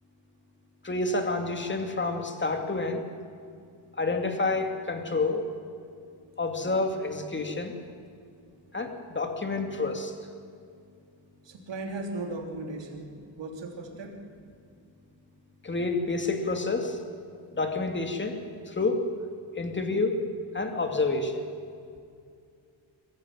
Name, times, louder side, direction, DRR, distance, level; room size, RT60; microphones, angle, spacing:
voice 1, 0.8-3.0 4.0-5.5 6.4-7.7 8.7-10.2 15.6-17.0 17.5-18.4 18.7-19.1 19.5-20.2 20.5-21.4, left 3 dB, 25° left, 5 dB, 2.6 m, -28 dB
voice 2, 11.4-13.1 13.4-14.1, right 2 dB, 65° right, 2 dB, 3.3 m, -36 dB
22.5 x 15.0 x 9.4 m, 2.3 s
cardioid pair, 95°, 48 cm